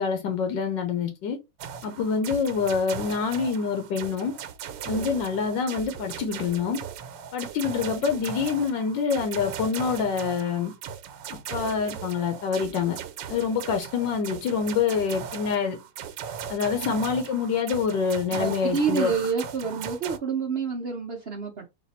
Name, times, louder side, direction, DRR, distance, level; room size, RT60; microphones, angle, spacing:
voice 1, 0.0-1.4 1.8-4.3 4.9-6.8 7.3-10.7 11.5-13.0 13.3-15.8 16.5-19.1, left 6 dB, 85° left, 1.5 m, -26 dB
sound 1, 1.6-20.2, right 8 dB, 85° right, 1.3 m, -38 dB
voice 2, 18.3-21.7, right 5 dB, 55° right, 0.7 m, -28 dB
4.1 x 2.5 x 4.1 m
omnidirectional pair, 1.9 m